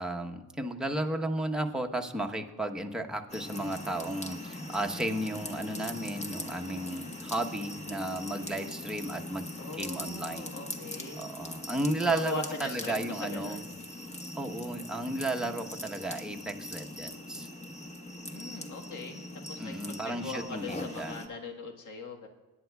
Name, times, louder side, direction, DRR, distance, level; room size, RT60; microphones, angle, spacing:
voice 1, 0.0-10.5 11.2-13.6 14.3-17.5 19.6-21.2, right 1 dB, ahead, 2 dB, 1.0 m, -34 dB
sound 1, 3.3-21.3, left 1 dB, 15° left, 1.2 m, -41 dB
voice 2, 9.6-11.3 12.0-13.6 18.3-22.3, left 4 dB, 50° left, 1 dB, 1.6 m, -40 dB
21.5 x 10.5 x 2.3 m, 1.2 s
cardioid pair, 80°, 39 cm